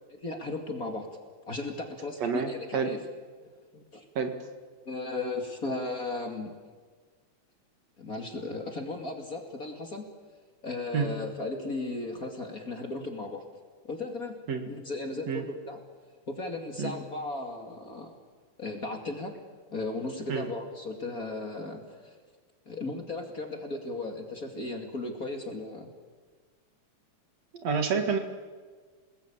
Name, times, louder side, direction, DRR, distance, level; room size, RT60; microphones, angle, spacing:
voice 1, 0.1-1.1 1.5-3.0 3.7-4.1 4.8-6.5 8.0-10.1 10.6-13.4 13.8-14.4 14.6-15.8 16.3-18.2 18.6-19.3 19.7-22.2 22.7-25.9, left 2 dB, 30° left, 3 dB, 2.6 m, -36 dB
voice 2, 2.2-2.9 4.2-4.3 10.9-11.1 14.5-14.7 15.3-15.4 16.8-17.0 20.3-20.4 27.6-28.2, right 5 dB, 60° right, 6 dB, 3.0 m, -28 dB
29.0 x 19.5 x 8.8 m, 1.5 s
omnidirectional pair, 3.4 m